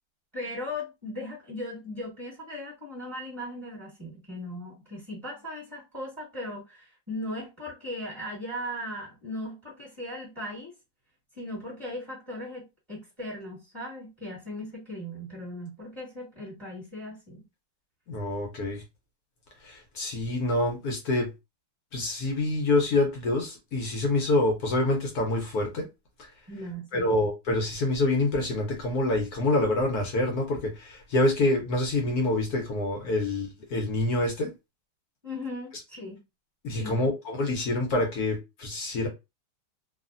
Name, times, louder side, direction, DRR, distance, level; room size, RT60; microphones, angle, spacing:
voice 1, 0.3-10.7 11.4-17.4 26.5-27.1 35.2-36.2 36.8-37.0, left 1 dB, 15° right, 1.3 m, -38 dB
voice 2, 18.1-18.8 19.6-21.3 21.9-25.9 26.2-26.3 26.9-34.5 36.6-39.1, left 2 dB, 65° left, 1.0 m, -26 dB
3.2 x 2.4 x 2.5 m
omnidirectional pair, 2.3 m